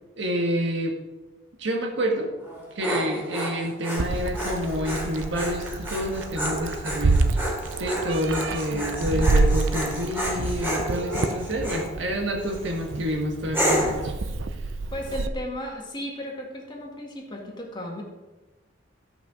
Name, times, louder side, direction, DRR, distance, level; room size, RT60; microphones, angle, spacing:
voice 1, 0.2-1.0 1.6-2.3 2.7-7.4 7.8-14.1, equal, 70° right, 2 dB, 1.7 m, -28 dB
Dog, 2.4-11.9 12.4-12.8 13.5-14.0, equal, 10° right, 3.0 m, -30 dB
Meow, 4.0-15.3, right 3 dB, 90° right, 0.7 m, -28 dB
voice 2, 8.7-9.3 14.9-18.0, left 1 dB, 25° left, -1 dB, 1.8 m, -35 dB
13.5 x 5.7 x 4.9 m, 1.2 s
head